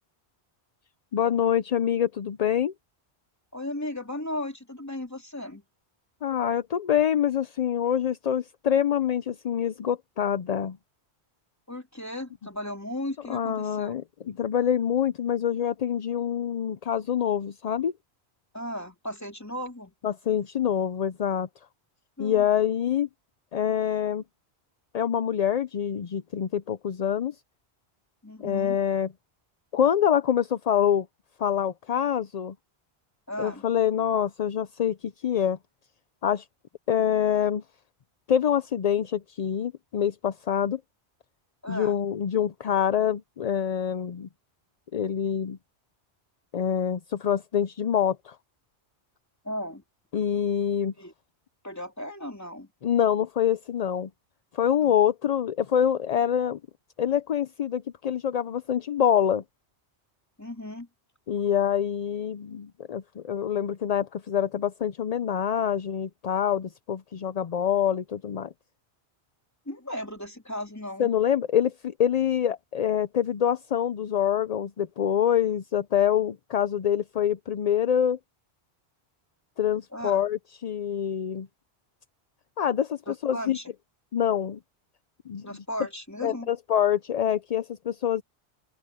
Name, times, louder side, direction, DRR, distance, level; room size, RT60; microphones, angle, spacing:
voice 1, 1.1-2.7 6.2-10.8 13.3-17.9 20.0-21.5 22.2-23.1 23.5-24.2 24.9-27.3 28.4-29.1 29.7-31.1 31.4-32.5 33.4-35.6 36.2-36.4 36.9-37.6 38.3-40.8 41.7-44.3 44.9-45.6 46.5-48.4 50.1-50.9 52.8-54.1 54.5-56.6 57.0-59.4 61.3-68.5 71.0-78.2 79.6-81.5 82.6-83.6 84.1-84.6 85.3-85.5 86.2-88.2, left 9 dB, 50° left, 0.5 m, -25 dB
voice 2, 3.5-5.6 11.7-13.9 18.5-19.9 22.2-22.5 28.2-28.8 33.3-33.6 41.6-42.0 49.4-49.8 51.0-51.1 51.6-52.7 54.8-54.9 60.4-60.9 69.7-71.1 79.9-80.3 83.1-83.7 85.4-86.5, left 1 dB, 15° left, 3.0 m, -36 dB
open air
omnidirectional pair, 1.1 m